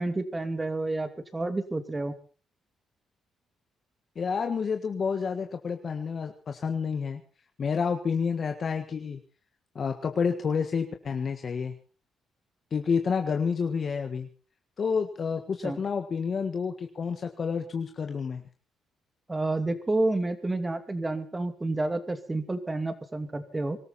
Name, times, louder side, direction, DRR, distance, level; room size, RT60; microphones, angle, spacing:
voice 1, 0.0-2.1 15.6-15.8 19.3-23.8, right 2 dB, 20° right, 9 dB, 2.5 m, -29 dB
voice 2, 4.1-7.2 7.6-9.2 9.7-11.7 12.7-14.3 14.8-18.4, left 6 dB, 45° left, 5 dB, 1.5 m, -29 dB
24.5 x 13.5 x 4.3 m, 0.37 s
cardioid pair, 90°, 0 cm